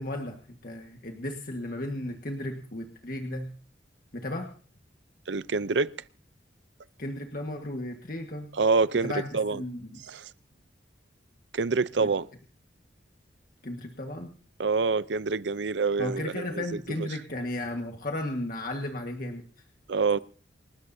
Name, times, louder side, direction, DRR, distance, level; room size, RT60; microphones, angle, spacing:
voice 1, 0.0-3.5 4.1-4.5 7.0-8.5 9.0-10.0 12.0-12.1 13.6-14.3 16.0-19.4, left 1 dB, 50° left, 1.7 m, -34 dB
voice 2, 5.3-5.9 8.5-9.6 10.1-10.3 11.5-12.3 14.6-16.6 17.0-17.1 19.9-20.2, right 4 dB, 80° right, 0.6 m, -26 dB
28.5 x 13.0 x 2.8 m
head